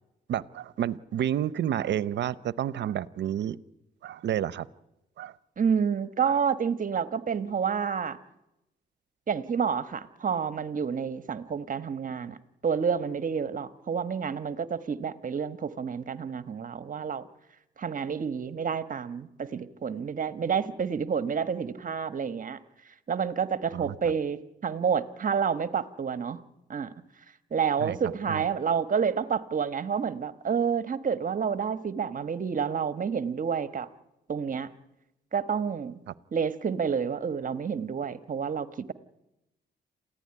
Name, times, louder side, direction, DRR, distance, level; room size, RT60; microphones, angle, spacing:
voice 1, 0.3-3.6 4.0-4.7 5.2-5.4 6.2-6.4 23.7-24.1 27.8-28.0 28.3-28.4, right 10 dB, 75° right, 18 dB, 0.8 m, -30 dB
voice 2, 5.6-8.2 9.3-12.4 12.6-17.2 17.8-22.6 23.1-26.4 26.7-26.9 27.5-33.9 34.3-34.7 35.3-36.0 36.3-38.9, right 6 dB, 45° right, 12 dB, 1.3 m, -29 dB
27.5 x 15.5 x 9.9 m, 0.93 s
cardioid pair, 80°, 18 cm